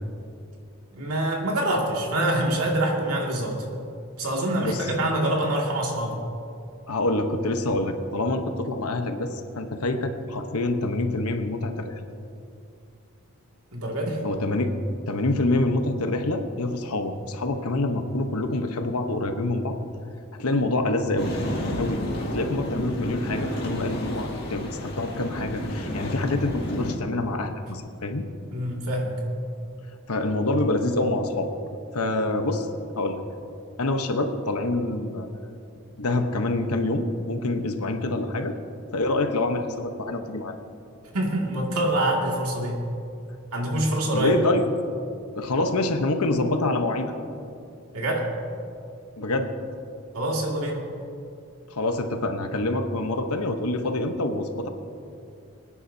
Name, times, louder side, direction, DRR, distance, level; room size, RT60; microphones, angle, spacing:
voice 1, 0.9-3.6 4.2-6.2 13.7-14.2 28.5-29.2 41.1-42.9 43.5-44.4 47.9-48.3 50.1-50.8, right 1 dB, 90° right, -1 dB, 2.3 m, -25 dB
voice 2, 4.6-4.9 6.9-11.9 14.2-14.7 15.1-19.8 20.4-21.3 21.8-22.0 22.3-28.3 30.1-31.5 31.9-32.7 33.0-33.2 33.8-35.3 36.0-38.6 38.9-40.5 44.1-44.7 45.3-47.1 49.2-49.5 51.7-54.7, left 2 dB, 85° left, 6 dB, 1.0 m, -26 dB
sound 1, 21.2-26.9, equal, 45° left, 1.9 m, -31 dB
24.0 x 9.9 x 2.8 m, 2.6 s
head